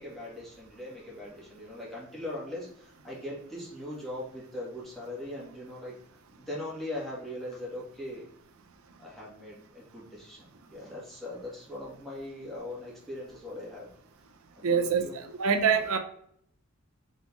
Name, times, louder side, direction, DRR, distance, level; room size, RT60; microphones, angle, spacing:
voice 1, 0.0-5.9 6.4-8.3 9.0-13.9 14.6-15.2, left 1 dB, ahead, -7 dB, 1.5 m, -40 dB
voice 2, 14.6-15.0 15.4-16.0, right 6 dB, 70° right, 6 dB, 0.5 m, -24 dB
4.1 x 3.7 x 2.4 m, 0.68 s
head